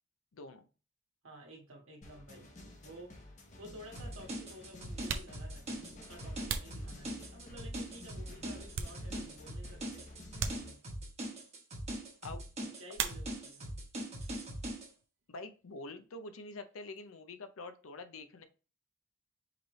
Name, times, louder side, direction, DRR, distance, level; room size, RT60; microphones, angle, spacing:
voice 1, 0.3-0.7 12.2-12.4 15.3-18.4, left 2 dB, 90° left, 9 dB, 0.6 m, -46 dB
voice 2, 1.2-2.5 2.8-3.3 3.6-10.1 12.6-13.8, right 1 dB, 80° right, 0 dB, 1.5 m, -52 dB
sound 1, 2.0-10.7, left 2 dB, 35° left, 0.9 m, -52 dB
sound 2, 3.9-14.9, right 1 dB, 30° right, 1.3 m, -42 dB
sound 3, 5.0-7.6 8.1-9.5 9.7-9.9 10.3-11.2 12.9-13.7 14.0-14.7 14.9-17.1, right 6 dB, 60° right, 0.5 m, -42 dB
5.0 x 3.2 x 3.1 m, 0.35 s
head